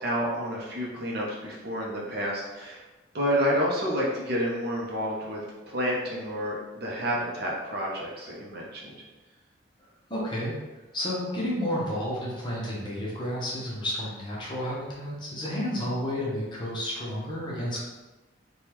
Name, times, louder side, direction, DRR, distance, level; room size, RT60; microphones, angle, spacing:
voice 1, 0.0-2.8 3.1-9.0, equal, 50° right, -3 dB, 0.6 m, -29 dB
voice 2, 10.1-10.5 10.9-17.8, equal, 25° left, -5 dB, 0.7 m, -31 dB
3.4 x 2.2 x 2.9 m, 1.1 s
head